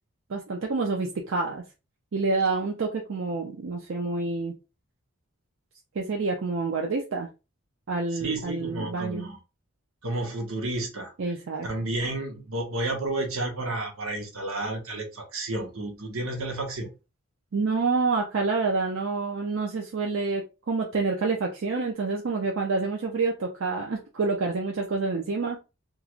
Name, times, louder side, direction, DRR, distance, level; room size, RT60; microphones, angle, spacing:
voice 1, 0.3-1.6 2.1-4.5 6.0-7.3 7.9-9.3 11.2-11.7 17.5-25.6, right 3 dB, 70° right, 0.5 m, -28 dB
voice 2, 8.1-9.4 10.0-11.1 11.6-16.9, right 2 dB, 85° right, 0.9 m, -31 dB
3.1 x 2.4 x 2.4 m
head